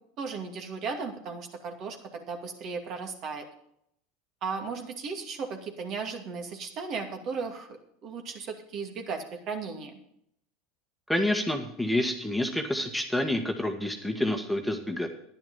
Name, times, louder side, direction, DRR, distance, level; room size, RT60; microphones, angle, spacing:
voice 1, 0.2-3.5 4.4-7.7 8.0-9.9, right 5 dB, 50° right, 4 dB, 2.4 m, -36 dB
voice 2, 11.1-15.1, left 1 dB, ahead, 3 dB, 1.6 m, -28 dB
10.5 x 10.5 x 5.6 m, 0.73 s
hypercardioid pair, 95°, 0 cm